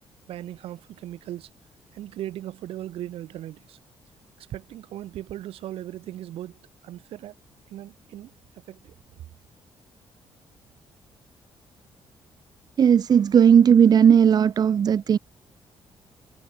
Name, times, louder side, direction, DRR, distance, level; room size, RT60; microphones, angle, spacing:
voice 1, 0.3-1.5 1.9-3.8 4.4-7.3 7.7-8.3 8.7-8.9, right 13 dB, 85° right, 7.5 m, -38 dB
voice 2, 12.8-15.2, right 8 dB, 45° right, 2.9 m, -16 dB
cardioid pair, 155°, 10 cm